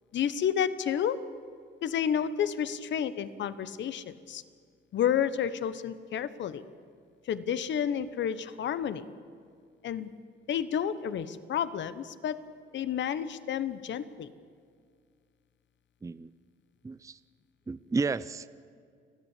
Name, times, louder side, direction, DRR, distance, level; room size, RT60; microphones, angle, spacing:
voice 1, 0.1-1.2 1.8-4.4 4.9-6.6 7.3-9.0 9.8-10.1 10.5-12.4 12.7-14.3, left 8 dB, 65° left, 14 dB, 1.1 m, -30 dB
voice 2, 16.8-17.2 17.7-18.5, right 4 dB, 15° right, 16 dB, 0.5 m, -32 dB
29.5 x 10.5 x 8.3 m, 2.2 s
cardioid pair, 90°, 20 cm